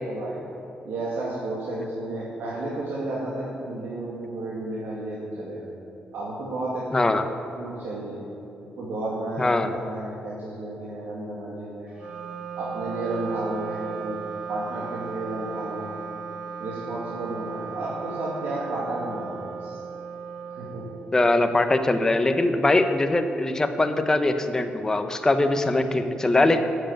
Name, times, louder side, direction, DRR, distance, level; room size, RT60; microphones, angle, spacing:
voice 1, 0.1-0.4 0.8-5.7 6.1-6.8 7.1-7.2 7.6-8.3 8.8-11.9 12.6-14.2 14.5-16.0 16.6-19.8 20.5-20.9, right 2 dB, 85° right, -6 dB, 2.5 m, -32 dB
voice 2, 6.9-7.2 9.4-9.7 21.1-26.6, left 2 dB, 20° left, 7 dB, 0.9 m, -22 dB
Wind instrument woodwind instrument, 11.9-21.5, right 6 dB, 35° right, 4.0 m, -36 dB
13.0 x 7.9 x 9.0 m, 2.8 s
cardioid pair, 130°, 3 cm